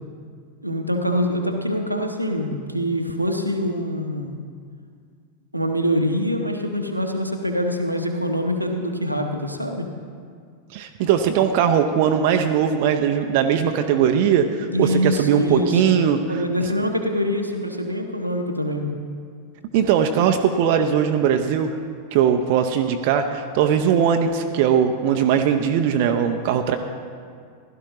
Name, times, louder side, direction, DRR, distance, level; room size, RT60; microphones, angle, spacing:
voice 1, 0.6-4.4 5.5-9.9 14.7-18.9, equal, 90° right, 3 dB, 0.9 m, -24 dB
voice 2, 10.7-16.4 19.7-21.8 22.1-26.8, right 8 dB, 45° right, 5 dB, 0.6 m, -20 dB
16.0 x 12.0 x 2.9 m, 2.1 s
figure-of-eight pair, 90°, 0 cm